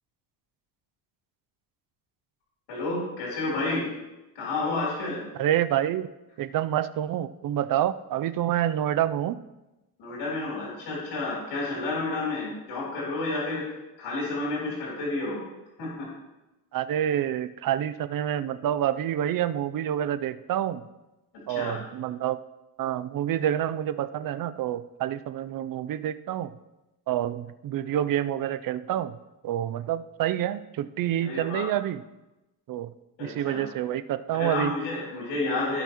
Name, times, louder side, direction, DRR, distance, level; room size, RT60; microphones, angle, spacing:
voice 1, 2.7-3.8 4.4-5.2 10.0-13.6 14.0-15.4 15.8-16.1 21.5-21.8 31.2-31.6 33.2-33.6 34.3-35.8, left 2 dB, 85° left, -5 dB, 3.5 m, -30 dB
voice 2, 5.4-6.1 6.4-9.4 16.7-20.8 21.5-22.4 22.8-26.5 27.1-29.2 29.4-32.0 32.7-32.9 33.2-34.7, right 11 dB, 55° right, 13 dB, 0.5 m, -27 dB
16.5 x 5.8 x 3.0 m, 1.0 s
cardioid pair, 120°, 40 cm